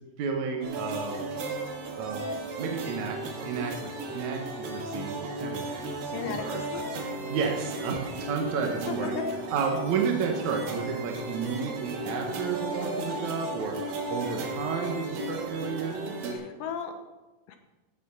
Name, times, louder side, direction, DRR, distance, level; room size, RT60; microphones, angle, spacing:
voice 1, 0.2-1.2 1.9-2.2 2.6-6.7 7.3-9.2 9.5-13.8 14.1-16.0, right 5 dB, 65° right, 1 dB, 2.4 m, -32 dB
sound 1, 0.6-16.4, right 2 dB, 85° right, 3.4 m, -35 dB
voice 2, 6.1-7.1 8.9-9.2 16.3-16.9 17.5-17.6, left 7 dB, 75° left, 6 dB, 2.7 m, -36 dB
14.5 x 7.2 x 5.5 m, 1.1 s
omnidirectional pair, 4.0 m